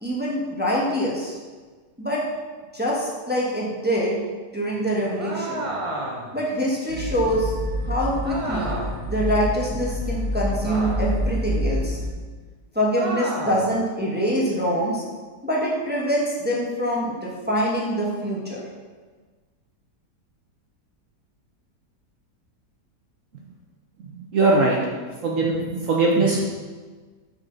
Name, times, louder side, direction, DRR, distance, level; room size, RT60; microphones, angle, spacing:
voice 1, 0.0-1.3 2.0-2.2 2.7-4.2 4.5-5.6 6.3-7.5 7.8-8.7 9.1-12.0 12.7-15.0 15.4-18.6, equal, 5° right, -5 dB, 0.9 m, -24 dB
sound 1, 5.2-6.4 8.2-9.1 10.6-11.3 12.9-13.7, right 1 dB, 40° right, 0.5 m, -31 dB
sound 2, 6.9-12.1, left 1 dB, 70° left, 1.6 m, -27 dB
voice 2, 24.3-24.8 25.2-26.4, right 3 dB, 55° right, -2 dB, 1.1 m, -20 dB
6.3 x 5.6 x 3.9 m, 1.4 s
omnidirectional pair, 1.8 m